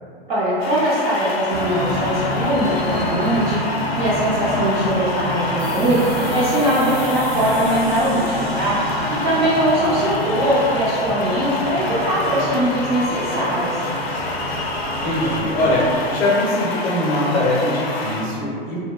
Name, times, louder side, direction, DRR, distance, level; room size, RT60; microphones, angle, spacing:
voice 1, 0.3-8.9 9.2-13.8, right 1 dB, 20° right, -9 dB, 0.3 m, -21 dB
sound 1, 0.6-18.2, left 3 dB, 75° left, 0.5 m, -27 dB
sound 2, 1.5-16.0, right 1 dB, 70° right, 0.6 m, -28 dB
sound 3, 5.6-10.7, right 1 dB, 90° right, 1.1 m, -39 dB
voice 2, 15.0-18.8, left 1 dB, 30° left, -4 dB, 0.6 m, -21 dB
2.7 x 2.1 x 2.3 m, 2.2 s
hypercardioid pair, 115°, 30 cm